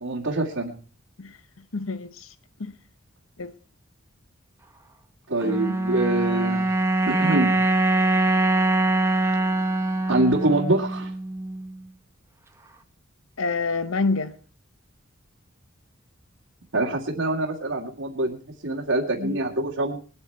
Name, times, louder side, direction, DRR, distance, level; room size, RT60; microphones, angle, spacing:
voice 1, 0.0-0.7 5.3-6.7 7.1-7.6 10.1-11.1 16.7-18.4 18.6-20.0, right 2 dB, 65° right, 2.0 m, -24 dB
voice 2, 1.7-2.3 2.6-2.7 3.4-3.5 13.4-14.3, left 3 dB, 75° left, 0.9 m, -27 dB
sound 1, 5.4-11.8, right 2 dB, 15° right, 1.0 m, -23 dB
21.5 x 8.9 x 4.6 m
head